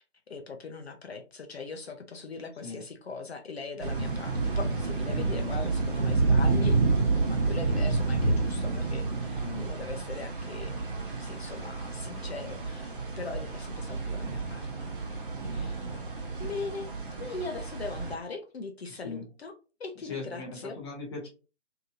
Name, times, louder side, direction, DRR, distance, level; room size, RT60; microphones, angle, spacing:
voice 1, 0.0-6.8 7.2-10.8 11.2-14.9 15.5-16.0 16.4-16.9 17.2-19.5 19.8-20.8, left 4 dB, 60° left, 5 dB, 0.6 m, -40 dB
Storm from indoors, 3.8-18.1, right 3 dB, 45° right, 0.9 m, -29 dB
voice 2, 5.1-5.8 9.4-9.7 12.4-12.6 15.5-15.7 19.0-19.2 20.0-21.3, left 4 dB, 20° left, -2 dB, 0.7 m, -40 dB
2.8 x 2.6 x 2.5 m, 0.33 s
figure-of-eight pair, 140°, 36 cm